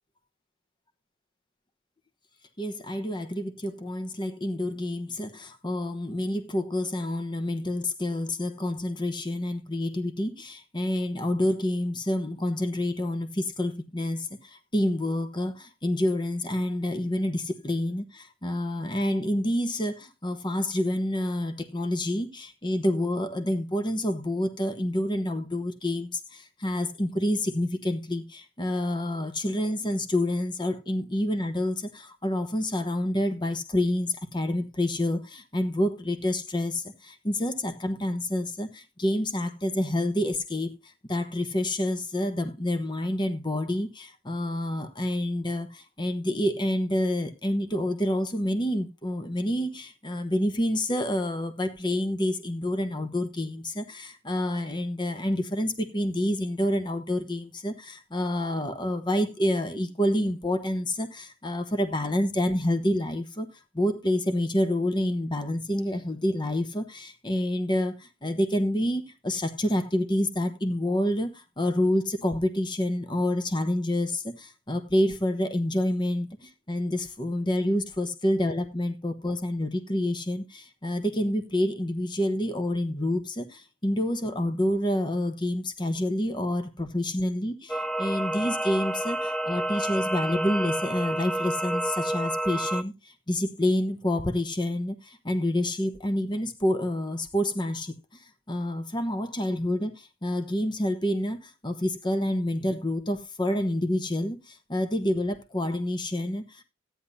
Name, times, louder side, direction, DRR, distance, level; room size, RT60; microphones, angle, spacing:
voice 1, 2.6-63.5 63.7-92.9 93.3-97.9 98.5-106.6, left 1 dB, 20° left, 1.1 m, -28 dB
sound 1, 87.7-92.8, right 1 dB, 5° left, 0.5 m, -29 dB
13.5 x 9.9 x 2.7 m
head